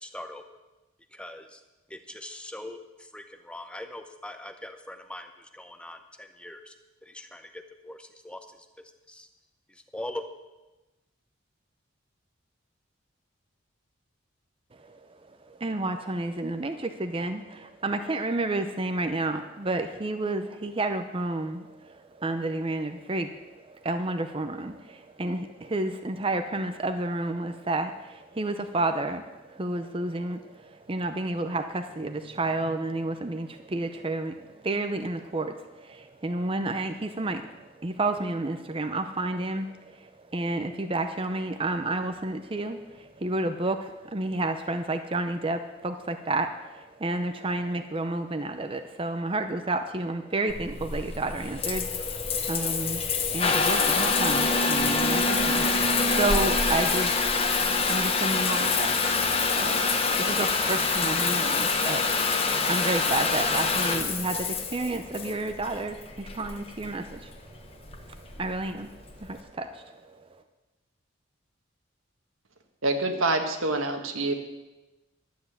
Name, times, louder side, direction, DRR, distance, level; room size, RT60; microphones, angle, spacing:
voice 1, 0.0-0.4 1.1-1.6 1.9-6.7 7.0-8.7 9.1-9.3 9.7-10.2, left 1 dB, 5° left, 7 dB, 0.7 m, -41 dB
voice 2, 14.8-67.7 68.1-70.4, right 2 dB, 25° right, 7 dB, 0.6 m, -31 dB
Water tap faucet / Bathtub (filling or washing) / Trickle dribble, 50.5-69.4, left 4 dB, 30° left, 1.1 m, -26 dB
voice 3, 72.8-74.3, right 2 dB, 85° right, 5 dB, 1.5 m, -26 dB
12.0 x 7.9 x 8.1 m, 1.1 s
head